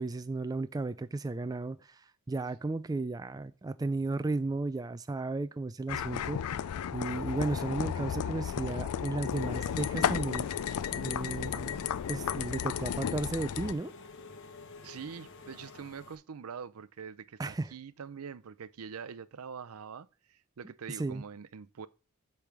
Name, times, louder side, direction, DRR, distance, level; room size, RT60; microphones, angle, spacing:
voice 1, 0.0-6.4 6.9-10.5 10.9-11.8 12.1-13.9 17.4-17.7 21.0-21.2, right 3 dB, 15° right, 0.3 m, -34 dB
sound 1, 5.9-13.7, left 8 dB, 80° left, 0.4 m, -33 dB
Engine / Mechanisms, 9.3-16.2, left 4 dB, 60° left, 0.9 m, -50 dB
voice 2, 14.8-21.9, right 6 dB, 75° right, 0.5 m, -44 dB
8.4 x 3.4 x 6.0 m
head